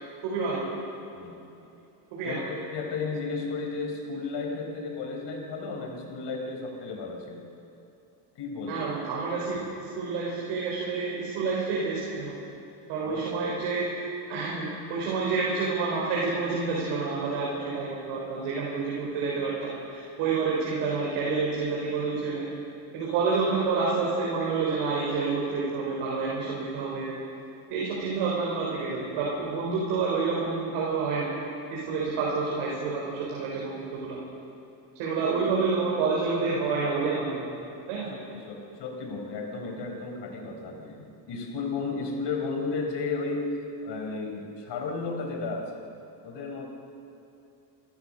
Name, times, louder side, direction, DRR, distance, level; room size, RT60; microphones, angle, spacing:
voice 1, 0.2-0.7 2.1-2.4 8.7-12.4 12.9-22.5 22.9-27.1 27.7-31.3 31.7-34.2 35.0-37.4 37.9-38.1, right 4 dB, 85° right, -5 dB, 4.8 m, -28 dB
voice 2, 2.2-7.4 8.4-8.9 13.0-13.5 38.1-43.5 43.8-45.8 46.2-46.7, left 4 dB, 60° left, 2 dB, 4.4 m, -34 dB
28.5 x 13.5 x 6.7 m, 2.7 s
cardioid pair, 100°, 46 cm